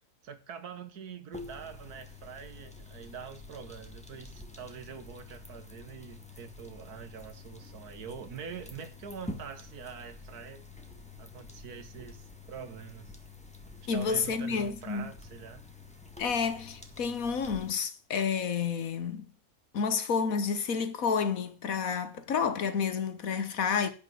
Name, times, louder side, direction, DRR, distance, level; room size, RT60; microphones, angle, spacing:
voice 1, 0.0-10.7 11.2-13.1 13.9-15.6, right 7 dB, 80° right, 1.8 m, -45 dB
sound 1, 1.3-17.7, left 3 dB, 5° left, 1.5 m, -48 dB
voice 2, 13.9-15.1 16.2-19.3 19.7-23.9, left 6 dB, 65° left, 1.5 m, -30 dB
10.0 x 6.0 x 7.8 m
omnidirectional pair, 1.6 m